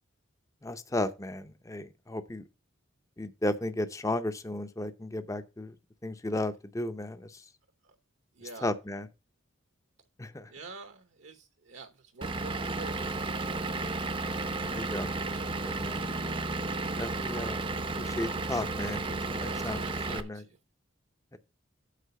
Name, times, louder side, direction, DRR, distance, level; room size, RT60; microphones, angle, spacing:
voice 1, 0.6-2.4 3.2-5.7 6.0-7.4 8.4-9.1 10.2-10.5 14.7-15.2 15.6-16.0 17.0-17.6 18.0-19.8 20.1-20.4 21.3-21.4, left 1 dB, 15° left, 0.6 m, -34 dB
voice 2, 8.3-8.7 10.5-13.5 15.1-15.6 19.4-20.6, right 3 dB, 65° right, 1.0 m, -48 dB
Vehicle / Engine, 12.2-20.2, right 3 dB, 25° right, 0.6 m, -33 dB
8.3 x 5.0 x 6.7 m
head